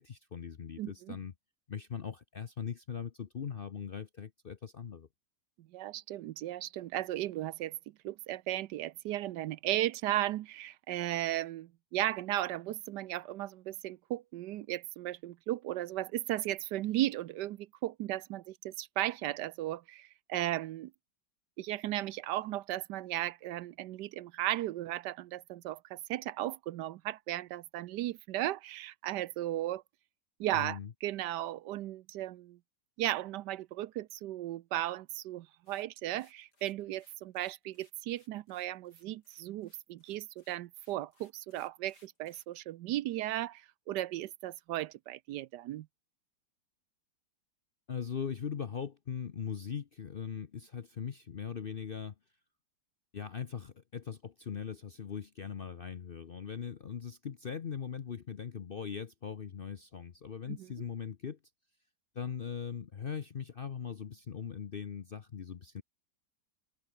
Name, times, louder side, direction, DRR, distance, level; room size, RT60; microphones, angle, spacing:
voice 1, 0.0-1.3 1.7-5.1 30.5-30.9 47.9-52.1 53.1-61.4 62.1-65.8, left 7 dB, 50° left, 0.7 m, -40 dB
voice 2, 0.8-1.2 5.6-7.8 8.0-20.9 21.6-29.8 30.4-32.6 33.0-45.9 60.5-60.7, right 14 dB, 75° right, 1.2 m, -36 dB
sound 1, 35.7-42.5, left 2 dB, 65° left, 7.1 m, -67 dB
open air
omnidirectional pair, 1.9 m